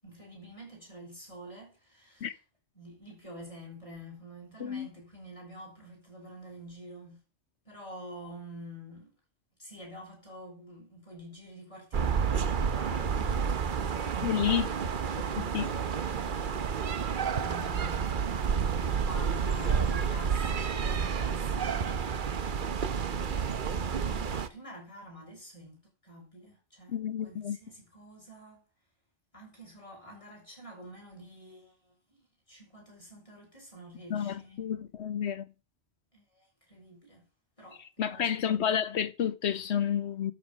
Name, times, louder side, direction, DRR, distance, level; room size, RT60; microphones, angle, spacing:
voice 1, 0.0-2.4 2.7-7.2 7.6-9.1 9.6-14.8 15.3-28.6 29.3-34.7 36.1-37.2 37.6-38.6, equal, 30° left, 6.8 m, -48 dB
sound 1, 11.9-24.5, right 6 dB, 50° right, 0.9 m, -30 dB
voice 2, 14.2-14.7 15.4-15.7 26.9-27.6 34.1-35.4 38.0-40.3, left 9 dB, 70° left, 1.0 m, -30 dB
12.5 x 7.0 x 6.2 m
omnidirectional pair, 1.2 m